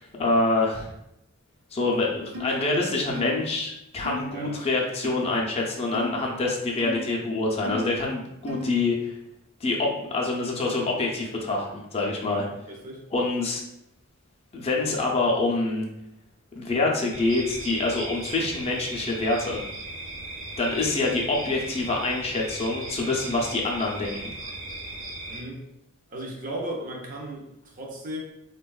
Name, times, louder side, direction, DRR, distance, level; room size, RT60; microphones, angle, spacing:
voice 1, 0.2-0.9 1.7-9.1 9.6-12.5 13.1-13.6 14.5-15.9 16.5-19.6 20.6-24.3, left 2 dB, 30° left, -1 dB, 0.4 m, -26 dB
sound 1, 2.3-2.6 3.2-3.4 4.0-4.3 5.0-5.3 5.9-6.2 6.8-7.0 7.6-7.9 8.5-8.8, left 3 dB, 85° right, 0.7 m, -34 dB
voice 2, 12.3-13.0 25.3-25.6 26.1-28.2, right 1 dB, 40° right, -1 dB, 0.5 m, -36 dB
sound 2, 17.1-25.4, right 2 dB, 65° right, 1.1 m, -37 dB
3.4 x 2.2 x 2.3 m, 0.83 s
head